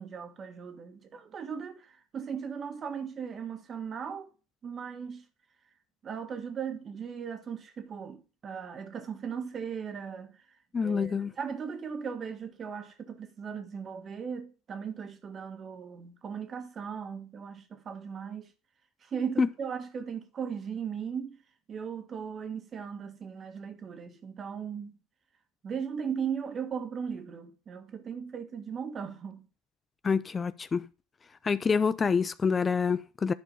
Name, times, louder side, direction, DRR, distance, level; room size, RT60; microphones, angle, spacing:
voice 1, 0.0-4.3 4.6-5.2 6.0-10.4 10.8-18.5 19.0-21.4 21.7-25.0 25.6-29.5, right 7 dB, 40° right, 1.8 m, -37 dB
voice 2, 10.7-11.3 19.4-19.5 30.0-30.9 31.4-33.3, left 5 dB, 25° left, 0.4 m, -27 dB
11.0 x 4.6 x 5.6 m
hypercardioid pair, 85°, 0 cm